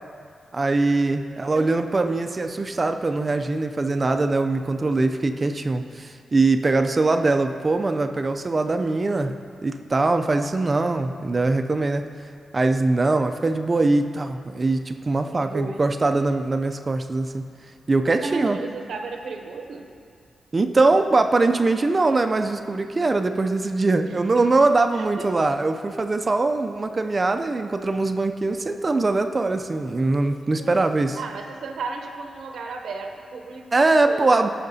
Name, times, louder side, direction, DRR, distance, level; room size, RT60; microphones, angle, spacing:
voice 1, 0.5-9.3 9.6-12.1 12.5-17.4 17.9-18.6 20.5-31.2 33.7-34.5, right 3 dB, 30° right, 7 dB, 0.3 m, -22 dB
voice 2, 1.3-1.7 15.3-15.8 18.2-19.9 24.3-24.5 24.9-25.3 30.6-30.9 31.1-34.5, right 4 dB, 85° right, 4 dB, 0.7 m, -33 dB
15.5 x 5.8 x 2.7 m, 2.2 s
wide cardioid pair, 125°, 0 cm